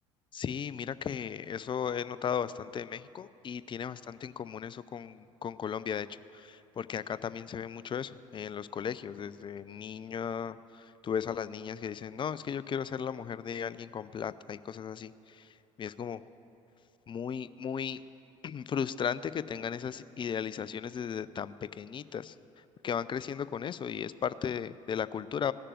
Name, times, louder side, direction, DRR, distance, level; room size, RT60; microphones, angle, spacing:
voice 1, 0.3-6.1 6.3-15.5 15.8-16.2 17.1-18.0 18.4-22.3 22.8-25.5, left 7 dB, 30° left, 16 dB, 0.4 m, -36 dB
16.5 x 6.7 x 8.8 m, 2.8 s
figure-of-eight pair, 60°, 17 cm